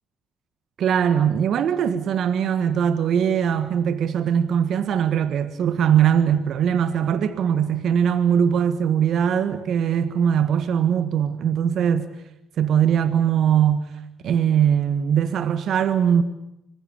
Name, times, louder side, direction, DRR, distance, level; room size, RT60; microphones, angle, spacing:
voice 1, 0.8-12.1 12.6-13.9 14.2-16.2, right 8 dB, 65° right, 1.6 m, -21 dB
25.5 x 22.0 x 8.6 m
supercardioid pair, 60°, 0 cm